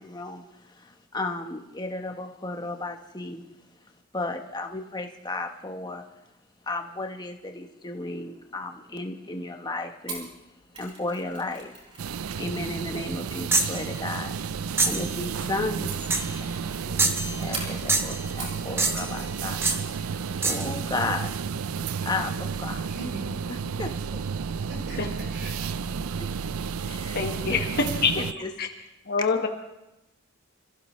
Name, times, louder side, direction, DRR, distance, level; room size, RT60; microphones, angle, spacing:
voice 1, 0.0-3.4 4.1-6.0 6.7-10.3 10.8-11.7 12.1-14.4 14.9-15.9 16.8-20.2 20.4-21.4 22.0-22.9 23.8-24.2 26.2-26.3 26.8-27.2 27.5-27.6 28.2-28.5, left 2 dB, 20° left, 4 dB, 1.2 m, -34 dB
Mechanisms, 10.1-18.7 19.0-19.4 19.7-19.8, right 3 dB, 30° right, 5.5 m, -44 dB
sound 1, 12.0-28.3, right 6 dB, 80° right, 0.4 m, -32 dB
sound 2, 13.5-13.8 14.8-15.1 16.1-16.4 17.0-17.6 17.9-18.2 18.8-19.2 19.6-19.8 20.4-20.7, right 3 dB, 10° right, 0.9 m, -25 dB
voice 2, 22.7-23.4 24.5-26.1, right 1 dB, 60° right, -2 dB, 3.8 m, -41 dB
voice 3, 26.9-28.2 28.6-28.7 29.1-29.5, left 4 dB, 50° left, 3 dB, 1.4 m, -26 dB
27.5 x 15.0 x 3.2 m, 0.92 s
head